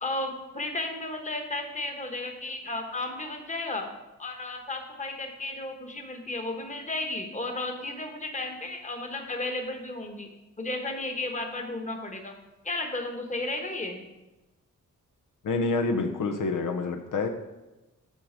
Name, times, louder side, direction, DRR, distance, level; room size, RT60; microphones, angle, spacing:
voice 1, 0.0-3.9 4.2-10.3 10.6-12.3 12.6-14.0, left 2 dB, 25° left, 4 dB, 1.1 m, -33 dB
voice 2, 15.4-17.3, left 3 dB, 80° left, 4 dB, 0.8 m, -27 dB
7.6 x 6.2 x 5.1 m, 1.0 s
wide cardioid pair, 130°, 32 cm